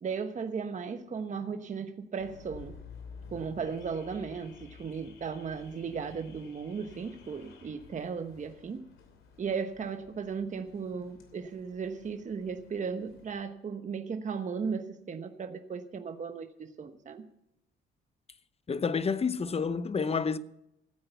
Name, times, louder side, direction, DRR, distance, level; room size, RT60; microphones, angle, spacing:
voice 1, 0.0-2.8 3.3-8.8 9.4-17.3, right 5 dB, 40° right, 1.0 m, -36 dB
Car / Alarm, 2.2-13.3, left 6 dB, 85° left, 2.9 m, -53 dB
voice 2, 18.7-20.4, left 5 dB, 30° left, 0.8 m, -29 dB
15.5 x 8.8 x 6.9 m
cardioid pair, 90°, 20 cm